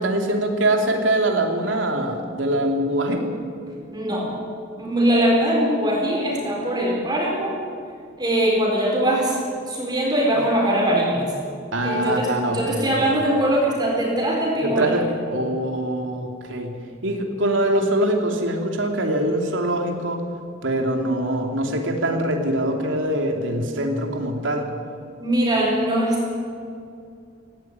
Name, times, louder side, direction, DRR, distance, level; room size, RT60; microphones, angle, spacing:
voice 1, 0.0-3.3 10.3-10.4 11.7-13.1 14.6-20.2 20.6-24.7, right 1 dB, 85° right, 3 dB, 2.9 m, -23 dB
voice 2, 3.9-4.3 4.8-7.5 8.2-11.3 11.8-14.9 25.2-26.4, right 1 dB, 20° right, -2 dB, 4.3 m, -21 dB
17.5 x 17.0 x 9.4 m, 2.4 s
head